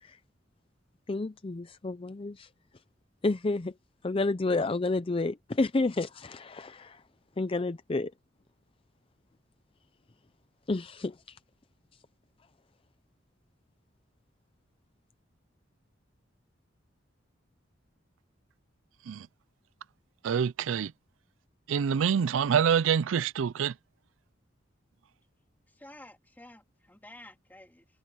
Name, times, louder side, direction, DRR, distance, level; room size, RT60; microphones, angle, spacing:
voice 1, 1.1-2.5 3.2-3.7 4.0-7.0 7.4-8.1 10.7-11.4, left 2 dB, 30° left, 0.5 m, -30 dB
voice 2, 20.2-20.9 21.7-23.7, right 7 dB, 90° right, 0.4 m, -26 dB
voice 3, 25.7-27.9, left 1 dB, 10° left, 2.3 m, -51 dB
head